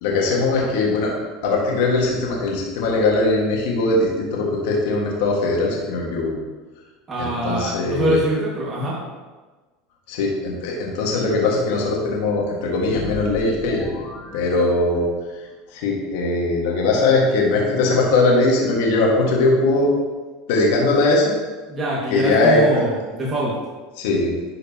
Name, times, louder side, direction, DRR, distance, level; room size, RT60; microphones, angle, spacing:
voice 1, 0.0-1.1 1.4-6.4 7.2-8.2 10.1-13.9 14.3-15.1 15.7-19.9 20.5-21.3 22.1-22.8 24.0-24.3, left 2 dB, 75° left, -2 dB, 1.8 m, -20 dB
voice 2, 7.1-9.0 21.7-23.5, right 1 dB, 25° right, -6 dB, 2.0 m, -24 dB
sound 1, 12.8-15.4, left 3 dB, 10° left, 2.2 m, -36 dB
11.0 x 5.1 x 3.0 m, 1.3 s
supercardioid pair, 115°, 0 cm